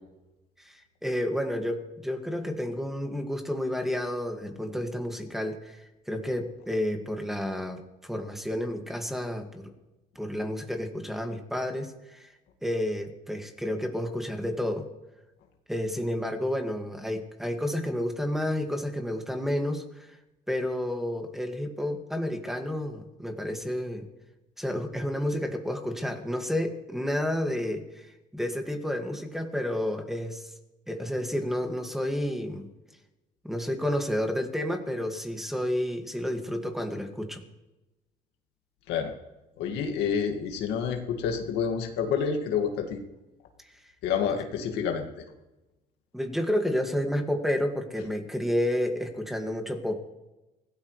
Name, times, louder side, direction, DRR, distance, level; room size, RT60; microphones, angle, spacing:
voice 1, 0.6-9.7 10.2-12.3 12.6-14.9 15.7-20.2 20.5-24.1 24.6-30.5 30.9-32.7 33.4-37.4 43.6-43.8 46.1-50.1, left 1 dB, ahead, 4 dB, 2.1 m, -30 dB
voice 2, 39.6-43.0 44.0-45.1, left 7 dB, 90° left, 3 dB, 2.1 m, -28 dB
24.5 x 17.0 x 3.3 m, 1.0 s
cardioid pair, 110°, 17 cm